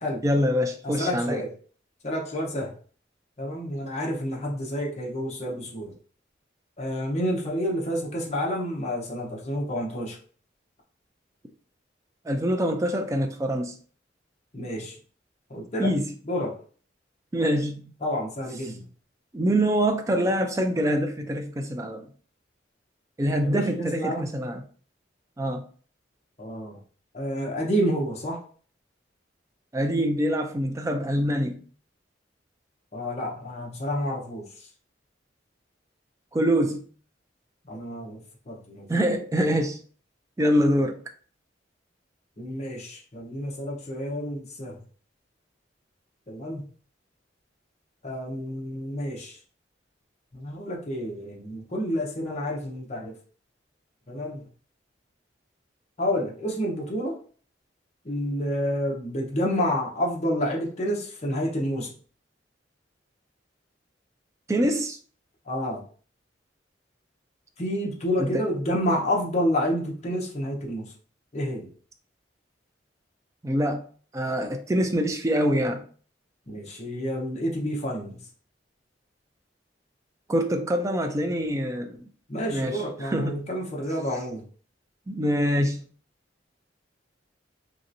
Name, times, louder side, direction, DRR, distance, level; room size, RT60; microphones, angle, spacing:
voice 1, 0.2-1.4 12.3-13.7 15.8-16.1 17.3-18.0 19.3-22.1 23.2-24.6 25.4-25.6 29.7-31.6 36.3-36.8 38.9-39.8 40.4-41.0 64.5-65.0 68.2-68.4 73.4-73.8 74.1-75.8 80.3-82.1 82.5-83.5 85.1-85.8, equal, 15° right, 0.3 m, -25 dB
voice 2, 0.8-1.5 2.0-2.7 3.4-5.9 6.8-10.2 14.5-15.0 15.5-15.9 16.3-16.5 18.0-18.8 23.4-24.3 26.4-26.8 27.1-28.4 32.9-34.4 37.7-38.2 38.5-38.9 42.4-44.7 46.3-46.6 48.0-49.4 50.3-53.1 54.1-54.4 56.0-57.2 58.0-61.9 65.5-65.8 67.6-70.9 71.3-71.7 76.5-78.2 82.3-84.4, equal, 35° left, 0.8 m, -29 dB
3.1 x 2.9 x 2.5 m
head